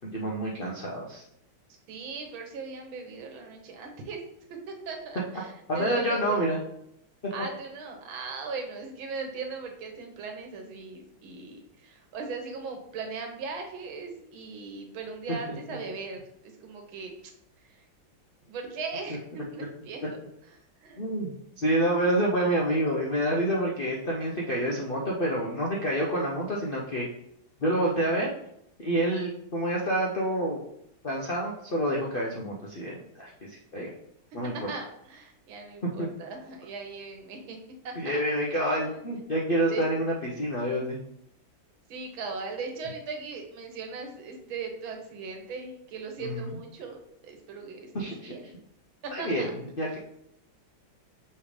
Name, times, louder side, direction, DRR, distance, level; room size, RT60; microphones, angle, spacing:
voice 1, 0.0-1.2 5.7-6.6 15.5-15.6 21.0-27.1 27.6-28.3 28.8-30.6 31.0-33.9 34.3-34.7 36.0-36.1 38.0-41.0 46.2-46.5 47.9-48.3 49.1-50.0, right 1 dB, 65° left, -3 dB, 0.5 m, -28 dB
voice 2, 1.9-4.2 4.7-6.2 7.3-17.1 17.7-17.8 18.5-20.2 20.8-21.0 34.7-37.6 37.8-38.2 39.6-39.8 41.9-48.4 49.0-49.5 49.9-50.0, right 4 dB, 90° right, 3 dB, 1.8 m, -39 dB
5.6 x 3.4 x 5.0 m, 0.77 s
omnidirectional pair, 2.1 m